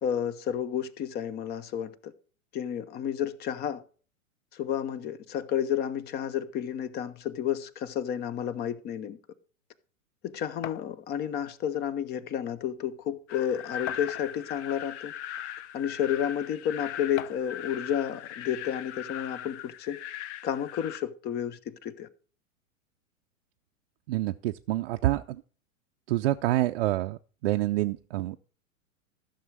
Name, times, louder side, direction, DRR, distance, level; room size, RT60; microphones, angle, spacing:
voice 1, 0.0-2.1 2.5-3.8 4.5-9.2 10.2-15.1 15.7-20.0 20.4-22.1, left 9 dB, 25° left, 0.6 m, -31 dB
sound 1, 10.6-10.9 12.0-12.1 12.6-12.7 13.9-14.5 15.3-15.4 17.2-17.6, left 12 dB, 80° left, 0.5 m, -40 dB
sound 2, 13.3-21.0, left 10 dB, 55° left, 0.9 m, -39 dB
voice 2, 24.1-25.4 26.1-28.4, right 16 dB, 50° right, 0.5 m, -27 dB
14.0 x 6.4 x 4.7 m
figure-of-eight pair, 105°, 41 cm